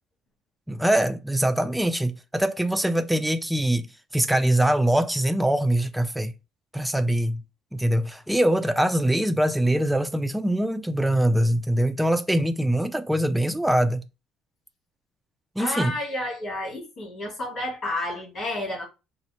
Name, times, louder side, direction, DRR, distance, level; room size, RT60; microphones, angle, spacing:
voice 1, 0.7-3.9 4.1-6.3 6.7-7.4 7.7-14.0 15.6-15.9, right 1 dB, 5° right, 0.3 m, -23 dB
voice 2, 15.6-18.8, left 1 dB, 40° left, 1.9 m, -31 dB
4.2 x 2.1 x 2.8 m
cardioid pair, 130°, 0 cm